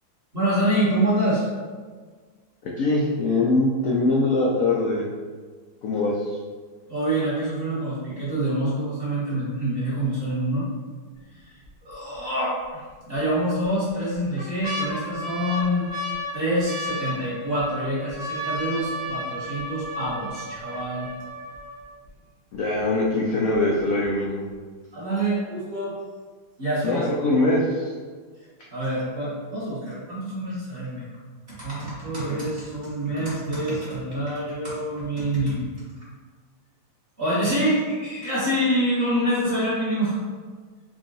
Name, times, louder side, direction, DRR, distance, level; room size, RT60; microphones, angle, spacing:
voice 1, 0.3-1.4 6.9-10.7 11.4-11.5 11.8-15.9 16.3-21.1 24.9-25.9 26.6-27.3 28.7-31.1 31.5-35.7 37.2-40.2, right 1 dB, 35° right, -9 dB, 1.1 m, -26 dB
voice 2, 2.6-5.1 5.8-6.4 22.5-24.5 26.8-27.9, left 2 dB, 80° left, -4 dB, 0.7 m, -22 dB
sound 1, 11.2-11.7 12.1-12.2 13.1-13.7 14.1-22.1 22.8-22.9 23.1-23.5 24.0-24.1, left 1 dB, 55° right, 0.9 m, -34 dB
3.7 x 2.3 x 3.8 m, 1.5 s
omnidirectional pair, 2.1 m